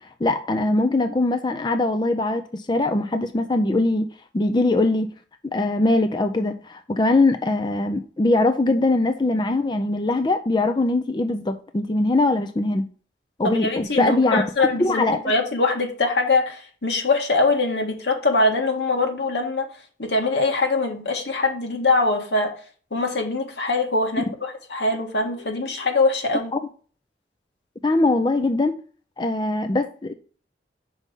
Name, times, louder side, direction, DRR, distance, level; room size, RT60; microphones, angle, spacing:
voice 1, 0.2-4.1 4.3-5.1 5.4-12.9 13.4-15.2 26.5-26.6 27.8-28.8 29.2-30.1, left 2 dB, 25° left, 0.5 m, -21 dB
voice 2, 13.4-19.7 20.0-22.5 22.9-26.5, left 3 dB, 85° left, 1.7 m, -23 dB
5.5 x 4.8 x 5.3 m
head